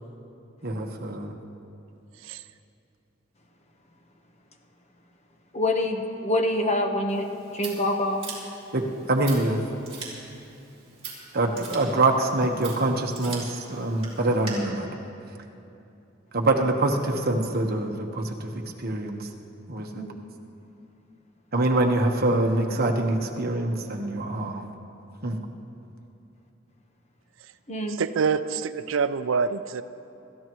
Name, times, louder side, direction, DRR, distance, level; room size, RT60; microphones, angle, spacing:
voice 1, 0.6-1.3 8.7-9.6 11.3-14.9 16.3-18.5 18.8-19.3 19.7-20.0 21.5-24.7 25.2-25.4, right 2 dB, 50° right, 3 dB, 1.2 m, -25 dB
voice 2, 5.5-7.3 7.5-8.2 19.9-20.2 27.7-28.0, left 1 dB, 35° left, 3 dB, 1.2 m, -26 dB
Scissors, 7.1-14.5, right 5 dB, 30° right, 4.4 m, -42 dB
voice 3, 27.9-29.8, right 5 dB, 85° right, 12 dB, 0.5 m, -26 dB
27.5 x 14.0 x 3.1 m, 2.8 s
head